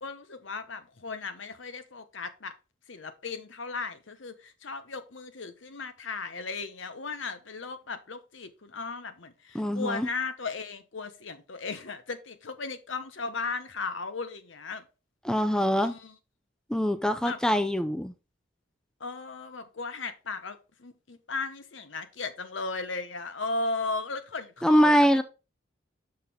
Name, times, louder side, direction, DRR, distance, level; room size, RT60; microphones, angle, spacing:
voice 1, 0.0-2.5 2.9-14.8 15.8-16.1 17.2-17.4 19.0-25.2, left 3 dB, 75° left, 1.0 m, -36 dB
voice 2, 9.5-10.1 15.2-15.9 16.7-18.1 24.6-25.2, equal, 5° left, 0.4 m, -23 dB
6.5 x 5.8 x 3.6 m
head